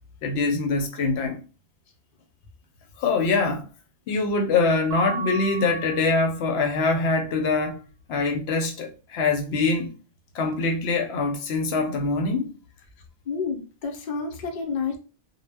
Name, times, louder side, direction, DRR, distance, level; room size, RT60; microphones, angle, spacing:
voice 1, 0.2-1.4 3.0-3.6 4.1-7.8 8.1-9.9 10.3-12.5, left 3 dB, 80° left, 0.8 m, -24 dB
Mallet percussion, 4.9-6.7, right 4 dB, 70° right, 0.7 m, -35 dB
voice 2, 13.3-15.0, left 5 dB, 55° left, 0.7 m, -29 dB
2.0 x 2.0 x 3.3 m
omnidirectional pair, 1.1 m